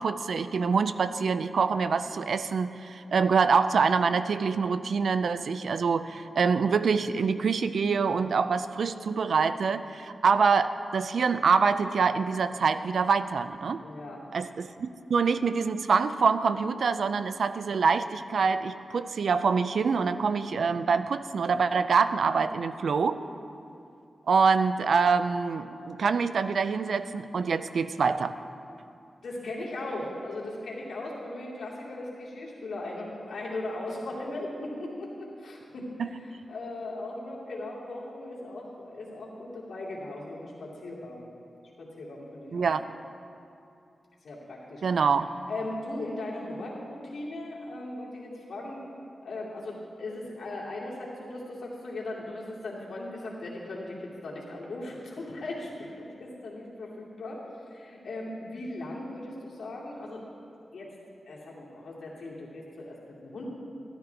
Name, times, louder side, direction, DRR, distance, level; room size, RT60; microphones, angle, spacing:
voice 1, 0.0-13.8 14.3-23.2 24.3-28.3 36.0-36.4 42.5-42.8 44.8-45.3, right 5 dB, 70° right, 12 dB, 0.4 m, -25 dB
voice 2, 13.8-14.2 29.2-35.9 36.2-41.3 41.8-42.7 44.2-44.8 45.5-48.8 49.2-57.4 57.7-60.2 60.7-60.9 61.3-63.4, left 2 dB, 85° left, -6 dB, 2.5 m, -38 dB
13.0 x 12.5 x 3.5 m, 2.6 s
wide cardioid pair, 145°, 0 cm